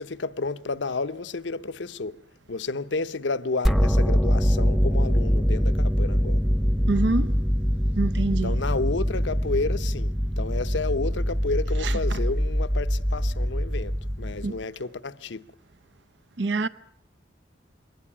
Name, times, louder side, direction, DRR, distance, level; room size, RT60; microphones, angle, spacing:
voice 1, 0.0-2.2 2.5-6.4 8.3-15.4, left 3 dB, 75° left, 0.8 m, -31 dB
sound 1, 3.6-14.6, equal, ahead, 0.9 m, -23 dB
voice 2, 6.9-7.3 8.0-8.5 11.8-12.2 14.4-14.5 16.4-16.7, right 3 dB, 70° right, 0.8 m, -26 dB
22.5 x 18.5 x 7.4 m
head